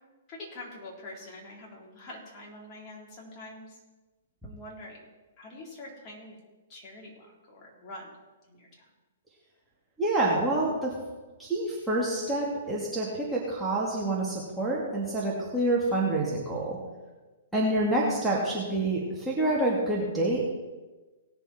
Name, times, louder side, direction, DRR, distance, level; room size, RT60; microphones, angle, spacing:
voice 1, 0.3-3.8 4.4-5.1 5.4-6.4 6.7-8.1 8.5-8.9, left 2 dB, 30° left, -3 dB, 3.9 m, -45 dB
voice 2, 10.0-10.9 11.4-16.8 17.5-20.5, right 2 dB, 5° right, -6 dB, 2.4 m, -27 dB
18.5 x 7.0 x 4.5 m, 1.2 s
figure-of-eight pair, 120°, 0 cm